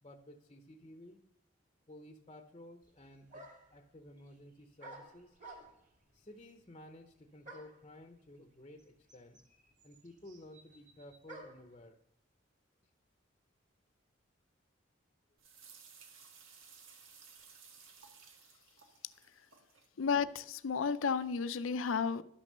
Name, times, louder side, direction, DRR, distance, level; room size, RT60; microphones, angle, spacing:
voice 1, 0.0-1.2 1.9-5.4 6.1-9.4 9.8-12.0, left 1 dB, 25° left, 0.7 m, -54 dB
sound 1, 2.8-2.9 3.3-3.8 4.8-6.0 7.4-7.9 8.8-8.9 9.1-11.7, right 2 dB, 40° right, 2.3 m, -52 dB
sound 2, 15.4-19.9, right 6 dB, 85° right, 1.5 m, -58 dB
voice 2, 20.0-22.2, left 5 dB, 85° left, 0.5 m, -32 dB
11.5 x 6.1 x 6.7 m
head